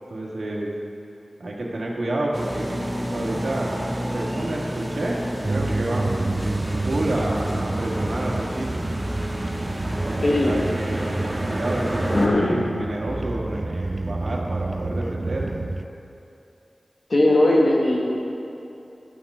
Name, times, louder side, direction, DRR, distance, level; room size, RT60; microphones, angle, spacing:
voice 1, 0.1-0.7 1.4-2.8 3.1-3.7 4.1-6.4 6.8-8.9 10.0-15.5, right 1 dB, 70° right, -3 dB, 1.6 m, -29 dB
sound 1, 2.3-12.3, right 1 dB, 20° right, 1.6 m, -30 dB
sound 2, 5.4-15.8, right 2 dB, 40° right, 0.3 m, -29 dB
voice 2, 10.2-10.5 12.1-12.6 17.1-18.0, left 1 dB, 60° left, -2 dB, 1.4 m, -18 dB
13.0 x 5.9 x 5.5 m, 2.7 s
cardioid pair, 50°, 0 cm